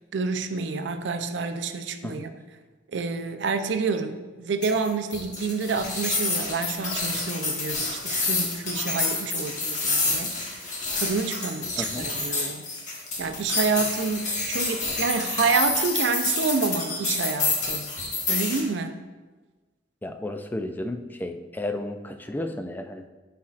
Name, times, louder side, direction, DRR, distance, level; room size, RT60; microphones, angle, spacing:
voice 1, 0.1-2.3 2.9-12.7 13.2-17.9 18.3-18.9, right 4 dB, 75° right, 8 dB, 0.5 m, -28 dB
sound 1, 4.6-18.6, left 3 dB, 45° left, 1.2 m, -28 dB
voice 2, 20.0-23.1, left 1 dB, 10° left, 7 dB, 0.3 m, -33 dB
10.0 x 4.3 x 2.4 m, 1.3 s
head